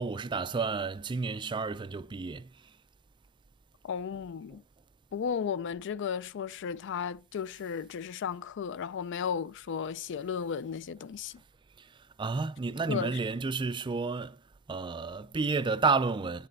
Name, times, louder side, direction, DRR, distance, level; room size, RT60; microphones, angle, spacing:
voice 1, 0.0-2.5 11.8-11.9 12.2-14.4 14.7-16.5, right 4 dB, 20° right, 0.3 m, -31 dB
voice 2, 3.8-4.6 5.1-11.3 12.9-13.2, left 7 dB, 55° left, 0.4 m, -34 dB
10.0 x 4.2 x 6.4 m
head